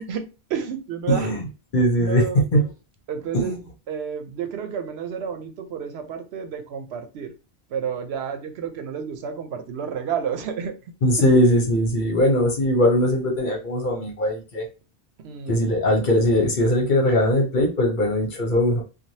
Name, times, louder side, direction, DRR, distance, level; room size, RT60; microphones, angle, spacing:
voice 1, 0.0-1.3 2.0-2.5 3.1-7.3 7.7-10.8 11.2-11.3 15.2-15.8, right 7 dB, 85° right, 0.8 m, -31 dB
voice 2, 1.1-1.4 1.7-2.7 3.3-3.6 11.0-14.7 15.5-18.8, equal, 55° left, 0.9 m, -20 dB
3.1 x 2.3 x 2.7 m
omnidirectional pair, 1.0 m